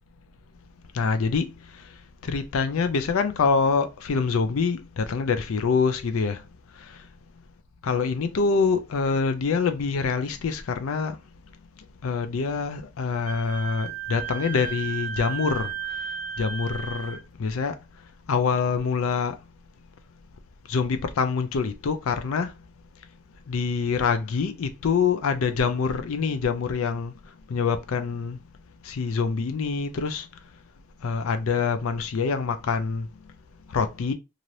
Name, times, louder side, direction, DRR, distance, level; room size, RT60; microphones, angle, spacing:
voice 1, 0.9-6.4 6.7-7.1 7.8-11.2 12.0-16.0 16.4-17.8 18.3-19.4 20.7-22.5 23.5-28.4 28.8-30.3 31.0-33.1 33.7-34.1, left 5 dB, 70° left, 0.4 m, -25 dB
Wind instrument woodwind instrument, 13.3-17.2, right 9 dB, 20° left, 0.8 m, -34 dB
2.7 x 2.5 x 3.0 m
head